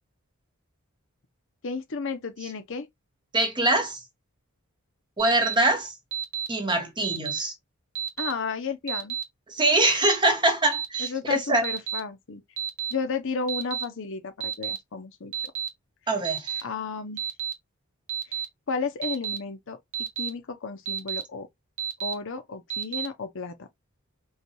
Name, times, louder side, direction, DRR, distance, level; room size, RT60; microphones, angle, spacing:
voice 1, 1.6-2.9 8.2-9.2 11.0-12.4 12.9-15.3 16.6-17.2 18.3-18.4 18.7-21.5 22.0-23.7, left 5 dB, 55° left, 0.7 m, -33 dB
voice 2, 3.3-4.0 5.2-5.9 6.5-7.5 9.5-11.7 16.1-16.6, right 2 dB, 20° right, 1.0 m, -23 dB
Alarm, 5.2-5.5 6.1-6.5 7.0-7.4 7.9-8.3 8.9-9.2 9.8-10.1 10.7-11.1 11.6-12.0 12.6-12.9 13.5-13.8 14.4-14.8 15.3-15.7 16.2-16.6 17.2-17.5 18.1-18.4 19.0-19.4 19.9-20.3 20.8-21.2 21.8-22.1 22.7-23.1, right 9 dB, 70° right, 1.2 m, -30 dB
5.5 x 2.3 x 3.0 m
head